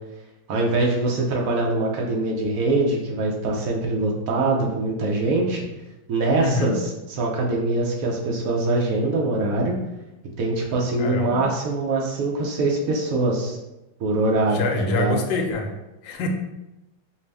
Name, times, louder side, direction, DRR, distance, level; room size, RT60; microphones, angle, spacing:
voice 1, 0.5-5.6 6.1-6.8 7.2-9.7 10.4-13.6 14.0-15.2, right 2 dB, 70° right, -1 dB, 0.8 m, -23 dB
voice 2, 6.4-6.8 11.0-11.4 14.5-15.7 16.0-16.3, left 3 dB, 80° left, 3 dB, 1.3 m, -25 dB
5.0 x 2.0 x 3.3 m, 0.97 s
omnidirectional pair, 2.1 m